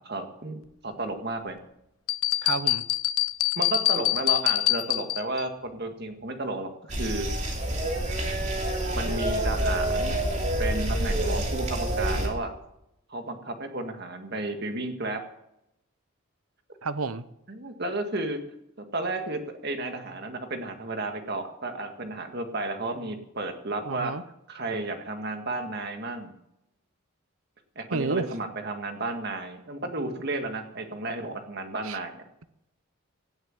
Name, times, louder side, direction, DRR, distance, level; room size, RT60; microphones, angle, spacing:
voice 1, 0.0-1.6 3.6-7.3 8.7-10.2 10.6-12.5 13.1-15.2 17.5-18.4 18.9-24.1 24.5-26.3 27.8-32.3, right 2 dB, 50° right, 6 dB, 1.9 m, -33 dB
sound 1, 2.1-5.4, left 14 dB, 80° left, 0.7 m, -25 dB
voice 2, 2.4-2.8 16.8-17.2 23.8-24.2 27.9-28.3 31.8-32.0, right 4 dB, 80° right, 14 dB, 0.8 m, -30 dB
sound 2, 6.9-12.3, right 1 dB, 35° right, 2.8 m, -27 dB
17.0 x 7.9 x 7.8 m, 0.82 s
head